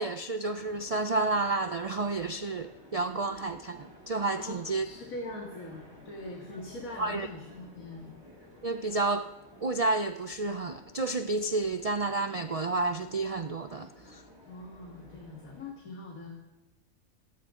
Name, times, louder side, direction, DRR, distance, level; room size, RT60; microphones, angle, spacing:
voice 1, 0.0-4.9 7.0-7.3 8.6-9.3 9.6-14.2, right 3 dB, 70° right, 9 dB, 0.3 m, -30 dB
sound 1, 0.5-15.7, equal, 20° right, 6.9 m, -53 dB
voice 2, 4.3-8.1 14.5-16.4, left 2 dB, 85° left, 0 dB, 2.3 m, -42 dB
26.0 x 12.5 x 3.8 m, 1.1 s
omnidirectional pair, 1.4 m